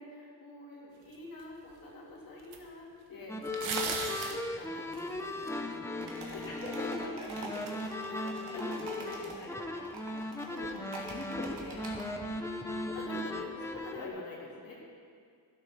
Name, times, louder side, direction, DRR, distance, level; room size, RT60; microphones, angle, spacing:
voice 1, 0.0-5.6 6.3-6.5 6.8-7.7 8.1-9.0 10.5-10.9 11.3-11.5 12.9-15.0, left 2 dB, 45° left, -5 dB, 2.8 m, -46 dB
sound 1, 1.4-1.5 2.5-2.6 3.5-4.4 4.9-5.5, right 5 dB, 80° right, 1.4 m, -35 dB
sound 2, 3.3-14.1, left 2 dB, 5° left, 0.5 m, -37 dB
sound 3, 6.0-12.1, right 2 dB, 55° right, 2.0 m, -46 dB
voice 2, 8.4-9.9 10.5-10.8 11.1-12.3, left 1 dB, 20° left, -8 dB, 1.8 m, -45 dB
13.0 x 8.2 x 5.8 m, 2.2 s
wide cardioid pair, 175°, 46 cm